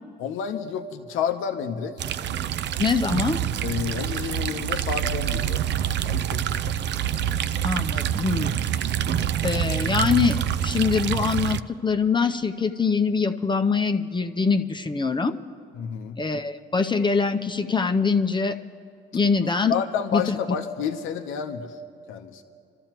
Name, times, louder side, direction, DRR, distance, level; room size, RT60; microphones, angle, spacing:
voice 1, 0.2-2.0 3.6-5.6 6.0-6.8 15.8-16.2 19.7-21.8 22.1-22.4, left 7 dB, 90° left, 6 dB, 0.8 m, -30 dB
sound 1, 2.0-11.6, right 10 dB, 60° right, 0.4 m, -26 dB
voice 2, 2.8-3.5 7.6-8.5 9.4-10.4 10.6-15.3 16.2-18.6 19.1-19.7 20.1-20.4, left 5 dB, 25° left, 6 dB, 0.6 m, -23 dB
27.0 x 13.5 x 3.0 m, 2.7 s
cardioid pair, 90°, 20 cm